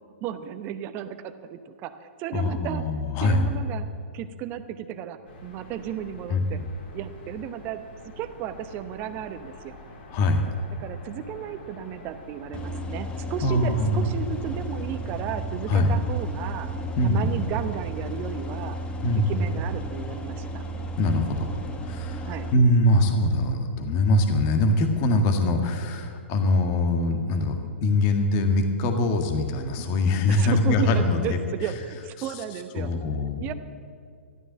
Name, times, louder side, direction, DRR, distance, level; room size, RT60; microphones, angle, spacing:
voice 1, 0.2-2.9 3.2-3.9 4.1-6.6 6.9-7.8 8.2-9.8 10.8-16.7 17.0-18.8 19.3-20.6 22.3-22.5 30.3-32.9 33.4-33.5, right 10 dB, 30° right, 10 dB, 0.9 m, -34 dB
voice 2, 2.3-3.5 6.3-6.7 10.1-10.4 13.4-14.1 15.7-15.9 17.0-17.3 19.0-19.4 21.0-21.5 21.8-31.4 32.2-32.3 32.8-33.4, left 1 dB, 35° left, 5 dB, 1.8 m, -23 dB
sound 1, 5.3-12.8, left 1 dB, 50° left, 3.4 m, -46 dB
sound 2, 12.5-22.5, right 1 dB, 15° left, 1.4 m, -33 dB
14.0 x 12.5 x 7.5 m, 2.1 s
figure-of-eight pair, 115°, 7 cm